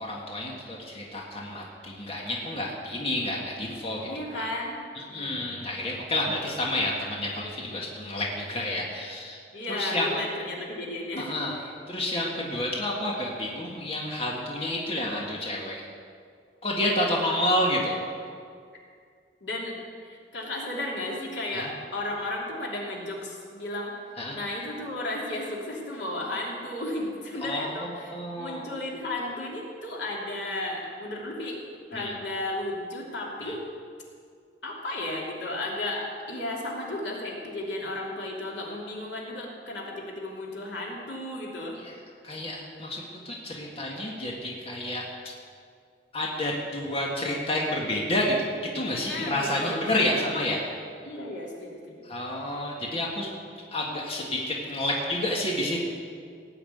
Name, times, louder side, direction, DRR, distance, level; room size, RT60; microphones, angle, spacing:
voice 1, 0.0-4.0 4.3-4.5 4.9-9.4 9.7-10.1 11.2-11.5 11.9-15.8 16.6-18.0 21.5-21.7 24.2-24.4 27.4-27.7 28.1-28.6 31.9-32.1 33.4-33.5 41.8-41.9 42.2-45.0 46.1-48.4 48.7-50.6 52.0-53.3 53.7-55.9, left 1 dB, 35° left, -2 dB, 1.8 m, -29 dB
voice 2, 4.0-4.8 5.1-5.4 9.5-11.7 19.4-19.7 20.0-23.9 24.3-31.6 31.9-33.6 34.6-41.8 49.1-49.8 50.2-50.3 51.0-52.0, left 1 dB, 80° left, -3 dB, 2.9 m, -34 dB
17.0 x 5.9 x 9.2 m, 2.2 s
head